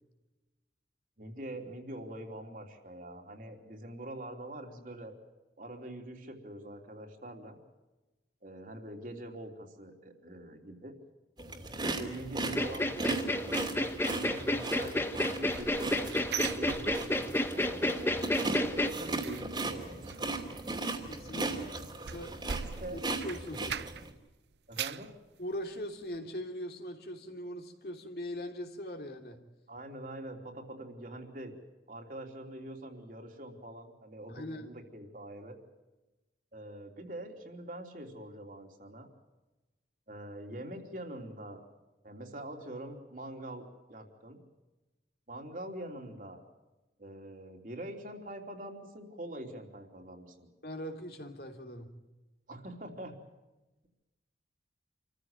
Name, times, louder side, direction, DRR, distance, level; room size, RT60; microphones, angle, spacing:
voice 1, 1.2-5.1 5.6-7.6 8.4-10.9 12.0-18.2 18.7-20.4 21.4-21.9 22.8-23.0 24.7-25.1 29.7-31.5 31.9-35.6 36.5-39.1 40.1-41.6 42.0-44.4 45.3-46.4 47.0-50.5 52.5-53.2, right 1 dB, 50° right, 2 dB, 3.3 m, -44 dB
sound 1, 11.4-24.1, right 2 dB, 25° right, 2.8 m, -37 dB
sound 2, 12.5-18.9, left 1 dB, 15° left, 1.3 m, -31 dB
sound 3, 15.1-17.5 17.8-18.1 18.4-24.2 24.5-25.1 25.6-25.7 26.1-26.2, right 7 dB, 70° right, 0.7 m, -42 dB
voice 2, 21.1-21.5 22.1-22.4 22.9-23.9 25.4-29.4 34.3-34.7 50.6-51.9, equal, 60° left, 4 dB, 3.0 m, -41 dB
27.5 x 15.0 x 9.1 m, 1.1 s
head